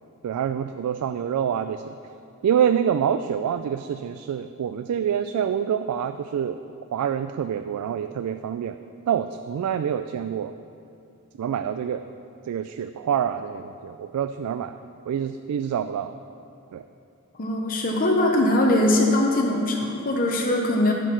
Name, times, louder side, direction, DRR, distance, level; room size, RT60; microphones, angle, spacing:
voice 1, 0.2-1.9 2.4-6.6 6.9-8.8 9.1-10.5 11.4-12.0 12.5-14.8 15.1-16.1 16.7-16.8, right 8 dB, 90° right, 10 dB, 0.3 m, -26 dB
voice 2, 17.4-20.9, left 1 dB, 40° left, 0 dB, 0.7 m, -21 dB
10.5 x 4.6 x 5.9 m, 2.5 s
head